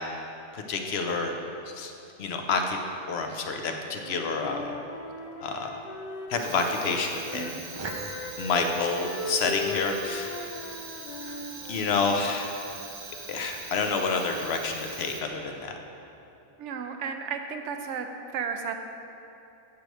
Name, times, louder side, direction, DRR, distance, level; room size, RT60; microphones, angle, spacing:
voice 1, 0.5-1.3 1.7-1.9 2.2-2.8 3.1-4.7 5.4-5.8 6.3-7.5 8.4-10.4 11.7-12.5 13.3-15.8, left 4 dB, 65° left, 4 dB, 0.9 m, -28 dB
Wind instrument woodwind instrument, 3.8-7.6 7.8-12.2, left 1 dB, 45° left, 0.6 m, -38 dB
Fire, 6.3-15.6, right 3 dB, 40° right, 0.4 m, -41 dB
voice 2, 16.6-18.1 18.3-18.7, right 6 dB, 85° right, 6 dB, 0.9 m, -33 dB
8.3 x 3.1 x 6.4 m, 3.0 s
omnidirectional pair, 1.2 m